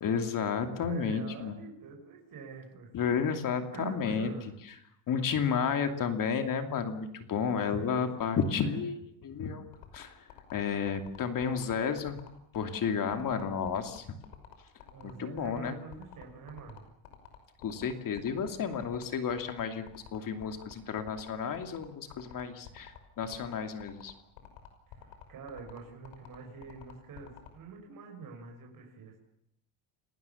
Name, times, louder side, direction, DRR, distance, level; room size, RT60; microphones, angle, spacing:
voice 1, 0.0-1.6 2.9-4.3 5.1-9.6 9.9-12.2 12.5-14.1 15.0-15.7 17.6-24.1, left 6 dB, 40° left, 7 dB, 2.7 m, -32 dB
voice 2, 0.6-3.0 3.7-4.6 7.7-8.8 13.3-13.6 14.9-16.8 24.9-29.2, right 5 dB, 40° right, 1 dB, 6.2 m, -46 dB
sound 1, 9.7-27.5, left 11 dB, 85° left, 6.0 m, -50 dB
30.0 x 19.0 x 7.1 m, 0.75 s
cardioid pair, 145°, 48 cm